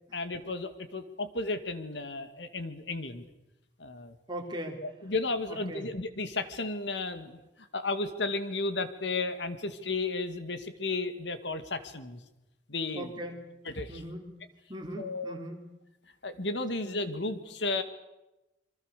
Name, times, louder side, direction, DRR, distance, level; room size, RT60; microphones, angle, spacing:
voice 1, 0.1-3.2 3.8-4.2 4.8-12.2 12.7-13.1 13.7-13.9 15.0-15.3 16.2-17.8, left 3 dB, 75° left, 10 dB, 2.1 m, -33 dB
voice 2, 4.3-4.8 5.5-5.9 12.9-13.4 13.9-14.4 14.7-15.7, right 1 dB, 25° right, 2 dB, 3.8 m, -39 dB
27.0 x 24.5 x 6.8 m, 0.97 s
head